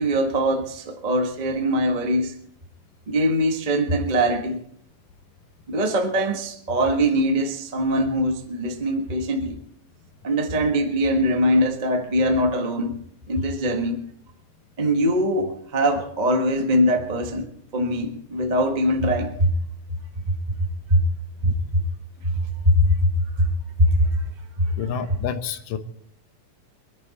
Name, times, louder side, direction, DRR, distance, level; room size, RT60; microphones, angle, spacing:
voice 1, 0.0-2.3 3.1-4.6 5.7-9.6 10.2-12.9 13.3-14.0 14.8-19.5 20.9-21.0 21.4-21.8 22.6-23.1 23.4-23.5 23.8-24.2 24.6-24.7, equal, 45° right, 3 dB, 0.5 m, -22 dB
voice 2, 24.8-25.8, left 7 dB, 90° left, 9 dB, 2.6 m, -28 dB
22.5 x 11.0 x 4.2 m, 0.66 s
omnidirectional pair, 3.7 m